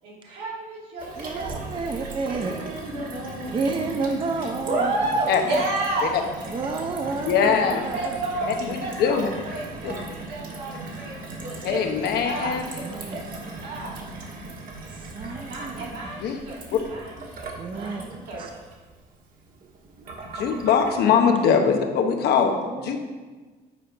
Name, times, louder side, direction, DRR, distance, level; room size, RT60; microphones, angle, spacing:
voice 1, 0.0-1.6 2.2-3.6 4.6-6.1 7.7-13.9 15.3-16.6 16.9-18.6, right 2 dB, 75° right, -5 dB, 2.7 m, -31 dB
Gurgling / Water tap faucet / Sink (filling or washing), 1.0-20.9, right 2 dB, 55° right, 1.5 m, -38 dB
voice 2, 1.2-2.5 3.5-4.9 6.5-8.2 12.8-13.3 14.9-15.9 17.6-18.0 18.4-18.5 20.5-20.6 21.0-21.4 22.6-23.0, right 4 dB, 30° right, 4 dB, 0.7 m, -30 dB
voice 3, 7.2-7.8 8.7-9.3 9.8-9.9 11.6-12.6 16.2-16.4 20.3-22.6 22.8-23.0, left 6 dB, 70° left, 4 dB, 1.1 m, -21 dB
9.0 x 4.4 x 5.3 m, 1.3 s
cardioid pair, 110°, 17 cm